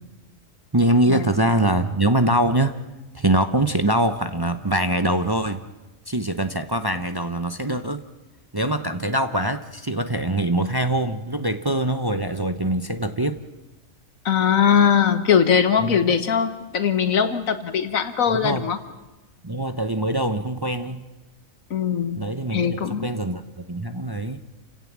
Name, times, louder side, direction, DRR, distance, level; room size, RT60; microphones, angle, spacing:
voice 1, 0.7-2.8 3.1-5.6 6.1-8.0 8.5-13.4 15.8-16.0 18.3-18.7 19.4-21.1 22.2-24.4, right 1 dB, 20° right, 8 dB, 0.7 m, -23 dB
voice 2, 14.3-18.8 21.7-22.2 22.5-23.1, left 7 dB, 85° left, 10 dB, 1.7 m, -20 dB
29.0 x 17.0 x 7.5 m, 1.1 s
omnidirectional pair, 1.4 m